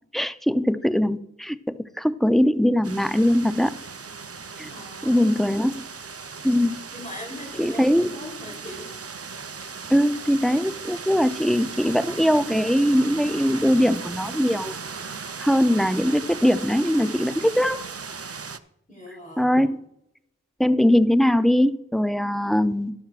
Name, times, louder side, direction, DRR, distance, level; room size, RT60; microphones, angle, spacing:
voice 1, 0.1-3.7 4.6-4.7 5.0-5.8 6.4-6.8 7.6-8.2 9.9-14.8 15.4-17.9 19.4-19.8 20.6-22.9, equal, ahead, 11 dB, 0.5 m, -21 dB
sound 1, 2.8-18.6, right 5 dB, 50° right, 0.6 m, -37 dB
voice 2, 4.6-5.7 6.9-8.9 18.9-19.7, left 1 dB, 25° left, 0 dB, 3.3 m, -40 dB
13.0 x 12.0 x 2.4 m, 0.80 s
wide cardioid pair, 50°, 30 cm